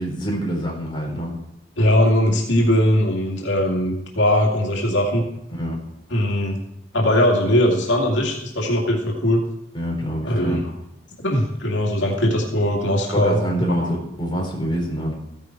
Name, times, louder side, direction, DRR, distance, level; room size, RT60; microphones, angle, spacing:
voice 1, 0.0-1.3 5.5-5.8 9.7-10.6 13.1-15.1, equal, 25° left, -1 dB, 4.5 m, -26 dB
voice 2, 1.8-5.2 6.1-6.6 6.9-9.4 10.2-10.7 11.2-13.4 13.8-13.9, left 1 dB, 85° left, -1 dB, 2.4 m, -20 dB
15.0 x 10.5 x 4.6 m, 0.81 s
head